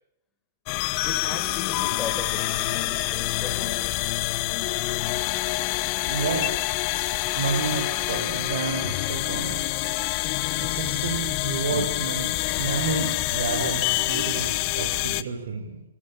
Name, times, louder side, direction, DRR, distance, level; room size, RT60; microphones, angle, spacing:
sound 1, 0.7-15.2, left 19 dB, 40° left, 1.2 m, -27 dB
voice 1, 1.0-4.0, left 5 dB, 15° left, 5 dB, 5.7 m, -37 dB
voice 2, 6.1-6.6 7.4-9.7 10.6-12.3 12.6-15.8, right 5 dB, 70° right, 2 dB, 5.9 m, -30 dB
27.0 x 20.0 x 8.9 m, 0.81 s
hypercardioid pair, 140°, 0 cm